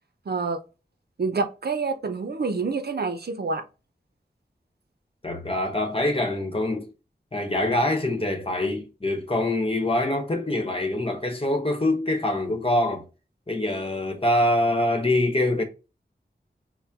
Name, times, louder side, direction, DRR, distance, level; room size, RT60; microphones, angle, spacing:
voice 1, 0.3-0.6 1.2-3.6, right 4 dB, 65° right, 0.6 m, -27 dB
voice 2, 5.2-6.9 7.3-13.0 13.5-15.6, left 1 dB, 30° left, 1.1 m, -24 dB
4.2 x 2.1 x 3.6 m
wide cardioid pair, 60°, 18 cm